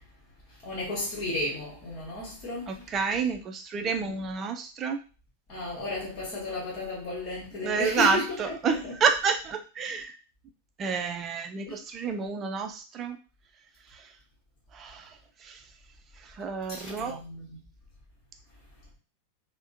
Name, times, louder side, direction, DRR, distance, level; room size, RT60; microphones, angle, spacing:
voice 1, 0.6-3.2 3.7-4.1 5.5-8.9 11.7-11.8 16.8-17.6, left 2 dB, 35° left, 1.2 m, -34 dB
voice 2, 2.7-5.0 7.6-10.1 10.8-13.2 14.7-15.1 15.4-15.6 16.3-17.2, right 5 dB, 30° right, 0.5 m, -29 dB
3.4 x 2.2 x 2.7 m
figure-of-eight pair, 90°, 0 cm